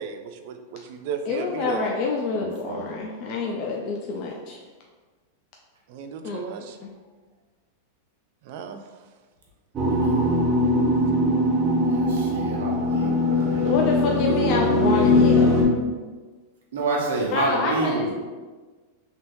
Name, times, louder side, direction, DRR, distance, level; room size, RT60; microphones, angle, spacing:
voice 1, 0.0-1.9 5.9-6.8 8.4-8.8, right 6 dB, 60° right, 7 dB, 0.3 m, -34 dB
voice 2, 1.3-4.6 6.2-6.4 6.8-6.9 13.6-15.6 17.3-18.1, left 4 dB, 45° left, -1 dB, 0.4 m, -27 dB
voice 3, 2.4-2.9 10.0-10.2 11.8-13.9 16.7-18.1, right 2 dB, 90° right, -3 dB, 0.9 m, -28 dB
sound 1, 9.7-15.6, left 1 dB, 30° right, 0.8 m, -21 dB
3.4 x 2.9 x 2.6 m, 1.3 s
supercardioid pair, 135°, 0 cm